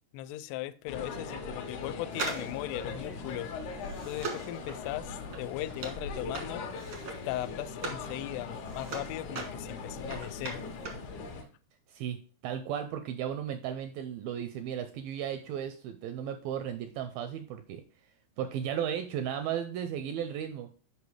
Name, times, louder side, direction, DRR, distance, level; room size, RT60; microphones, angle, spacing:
voice 1, 0.1-3.5 4.1-6.7 7.3-10.6, left 15 dB, 90° left, 2.6 m, -38 dB
sound 1, 0.9-11.4, left 4 dB, 65° left, 2.1 m, -40 dB
sound 2, 2.1-8.1 8.4-11.1 11.4-11.5, right 4 dB, 65° right, 1.2 m, -40 dB
voice 2, 12.4-17.8 18.4-20.7, right 9 dB, 85° right, 2.1 m, -35 dB
6.7 x 5.4 x 4.8 m
omnidirectional pair, 4.6 m